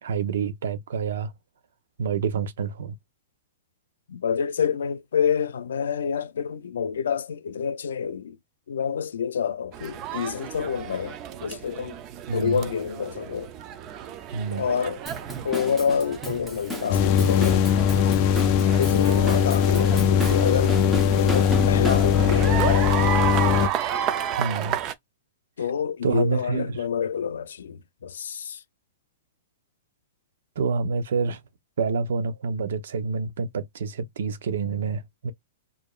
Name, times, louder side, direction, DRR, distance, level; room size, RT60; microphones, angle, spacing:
voice 1, 0.0-1.3 2.0-2.9 12.3-12.7 14.3-14.7 24.4-24.8 26.0-26.8 30.6-31.4 31.8-35.3, right 5 dB, 70° right, 0.8 m, -27 dB
voice 2, 4.1-8.4 8.7-12.0 12.3-13.5 14.5-15.0 15.4-17.6 18.7-20.7 21.2-22.9 25.6-28.6, left 7 dB, 90° left, 0.6 m, -28 dB
sound 1, 9.7-24.9, right 10 dB, 25° right, 0.5 m, -33 dB
Drum kit / Drum, 15.1-22.6, left 1 dB, 5° right, 0.9 m, -33 dB
sound 2, 16.9-23.7, left 8 dB, 35° left, 0.4 m, -20 dB
4.9 x 2.6 x 2.4 m
hypercardioid pair, 160°, 0 cm